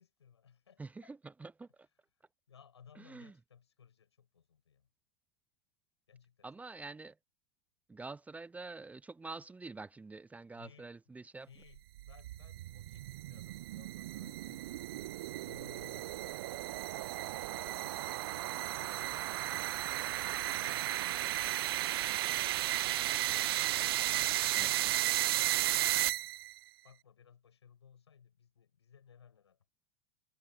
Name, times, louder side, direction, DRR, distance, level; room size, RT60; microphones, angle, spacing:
voice 1, 0.0-1.1 2.2-4.9 6.1-6.5 10.5-10.9 11.5-16.9 17.3-18.4 18.7-23.4 23.8-26.3 26.8-29.6, left 7 dB, 75° left, 7.3 m, -61 dB
voice 2, 0.8-1.9 3.0-3.3 6.4-7.1 7.9-11.5 24.5-24.7, right 3 dB, 10° right, 1.1 m, -47 dB
sound 1, 11.8-26.6, right 16 dB, 60° right, 0.6 m, -34 dB
figure-of-eight pair, 90°, 14 cm